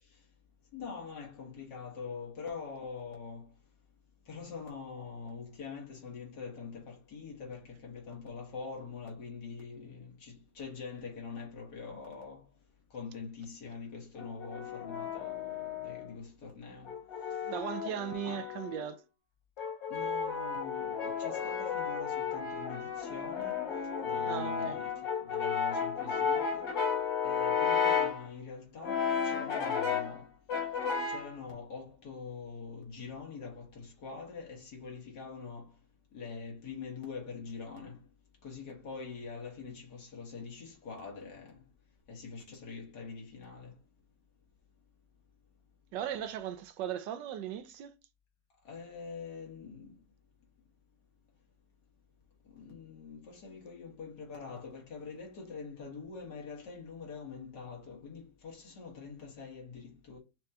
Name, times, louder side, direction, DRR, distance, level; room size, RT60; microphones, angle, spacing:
voice 1, 0.7-3.5 4.3-12.4 12.9-16.9 18.2-18.5 19.9-23.6 24.0-24.9 25.2-26.7 27.2-30.3 31.1-35.7 36.1-38.0 38.4-41.6 42.1-43.7 48.7-50.0 52.6-60.2, left 5 dB, 70° left, 2.0 m, -44 dB
Brass instrument, 14.2-16.1 16.9-18.9 19.6-28.2 28.8-30.2 30.5-31.3, left 6 dB, 85° left, 2.2 m, -33 dB
voice 2, 17.4-19.0 24.2-24.8 45.9-47.9, right 10 dB, 90° right, 1.3 m, -37 dB
6.3 x 2.3 x 2.7 m
omnidirectional pair, 1.9 m